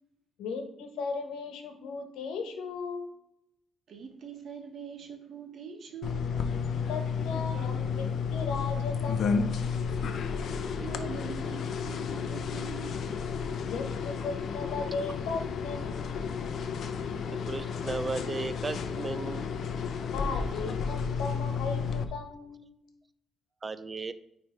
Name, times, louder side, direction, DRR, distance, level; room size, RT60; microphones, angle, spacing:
voice 1, 0.4-3.1 6.9-8.1 8.3-9.6 13.7-16.3 20.1-22.6, left 4 dB, 85° left, 1.2 m, -37 dB
voice 2, 3.9-6.3 10.4-12.9, right 6 dB, 60° right, 1.3 m, -43 dB
sound 1, 6.0-22.0, left 6 dB, 65° left, 0.6 m, -32 dB
voice 3, 17.5-19.5 23.6-24.1, right 3 dB, 30° right, 0.5 m, -35 dB
9.1 x 3.3 x 4.5 m
cardioid pair, 90°, 0 cm